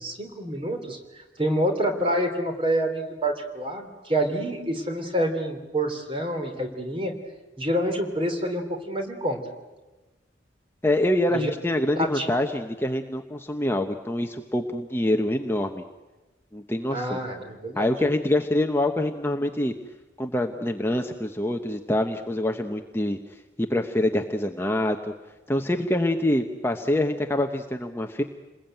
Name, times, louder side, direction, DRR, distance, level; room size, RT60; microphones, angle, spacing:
voice 1, 0.0-7.1 7.6-9.4 11.3-11.5 11.9-12.3 16.9-17.9, right 1 dB, 25° right, 5 dB, 3.4 m, -27 dB
voice 2, 10.8-15.8 16.5-17.2 17.8-19.7 20.2-23.2 23.6-25.1 25.5-28.2, left 1 dB, 10° left, 4 dB, 1.0 m, -25 dB
28.5 x 21.0 x 9.1 m, 1.2 s
head